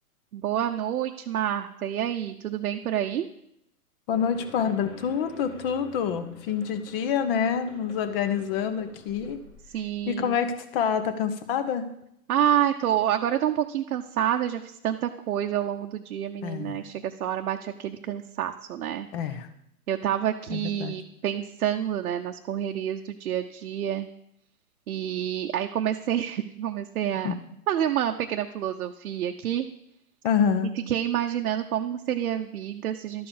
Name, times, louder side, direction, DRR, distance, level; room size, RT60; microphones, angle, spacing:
voice 1, 0.3-3.3 9.7-10.4 12.3-19.1 19.9-24.1 24.9-27.3 27.7-29.6 30.9-33.3, right 10 dB, 75° right, 4 dB, 0.8 m, -28 dB
sound 1, 4.1-10.1, left 2 dB, 85° left, 3.3 m, -49 dB
voice 2, 4.1-9.4 10.1-11.9 16.4-16.8 19.1-19.5 20.5-20.9 27.2-27.4 30.2-30.7, left 7 dB, 40° left, 10 dB, 1.1 m, -27 dB
12.0 x 4.8 x 7.2 m, 0.78 s
hypercardioid pair, 140°, 44 cm